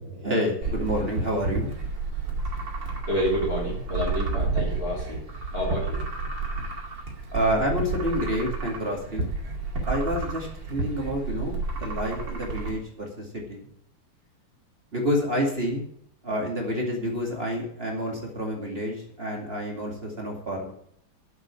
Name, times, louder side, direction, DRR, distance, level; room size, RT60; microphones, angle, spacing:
voice 1, 0.2-1.7 7.3-9.3 9.9-13.6 14.9-15.8 16.2-20.7, equal, 25° right, 0 dB, 2.5 m, -28 dB
sound 1, 0.6-12.7, right 3 dB, 60° right, 2.9 m, -31 dB
voice 2, 3.1-5.3 5.5-6.3, equal, 40° left, -4 dB, 3.7 m, -29 dB
8.1 x 7.6 x 8.8 m, 0.67 s
omnidirectional pair, 2.3 m